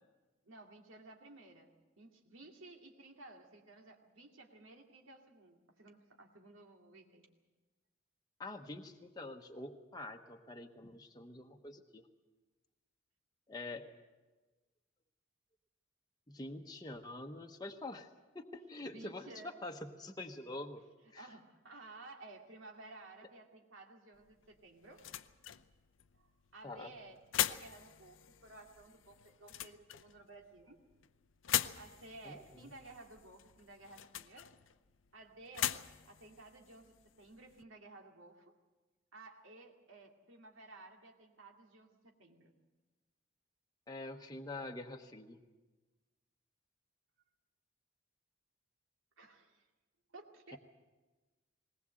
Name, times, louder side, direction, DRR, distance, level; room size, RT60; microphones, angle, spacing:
voice 1, 0.5-1.7 2.0-7.3 18.9-19.6 21.1-25.1 26.2-26.3 26.5-30.8 31.8-34.5 35.1-38.5 39.1-42.5 49.2-49.7 50.1-50.6, right 2 dB, 80° right, 2 dB, 2.3 m, -55 dB
voice 2, 8.4-12.1 13.5-13.8 16.3-18.1 18.3-20.8 21.1-21.3 26.6-26.9 32.2-32.7 43.9-45.4, left 2 dB, 20° left, 3 dB, 1.0 m, -46 dB
sound 1, 24.1-37.6, left 11 dB, 80° left, 0.6 m, -42 dB
20.0 x 19.5 x 7.7 m, 1.2 s
head